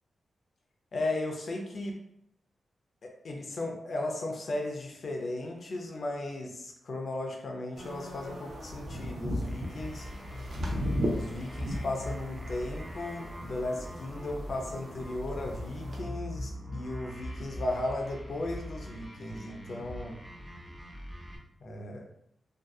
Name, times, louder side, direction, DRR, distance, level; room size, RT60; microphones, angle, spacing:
voice 1, 0.9-1.9 3.0-10.1 11.1-20.2 21.6-22.1, left 2 dB, 50° left, 1 dB, 0.5 m, -36 dB
sound 1, 7.8-16.0, equal, 65° right, 0.5 m, -37 dB
sound 2, 9.4-21.4, equal, 5° right, 0.5 m, -41 dB
2.6 x 2.2 x 2.3 m, 0.77 s
wide cardioid pair, 125°, 0 cm